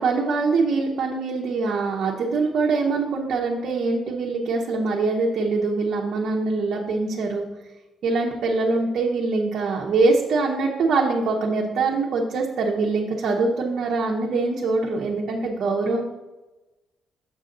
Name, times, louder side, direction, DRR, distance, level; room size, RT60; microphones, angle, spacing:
voice 1, 0.0-7.4 8.0-16.0, right 3 dB, 60° right, -2 dB, 0.9 m, -23 dB
6.4 x 6.3 x 3.8 m, 1.1 s
cardioid pair, 110°, 0 cm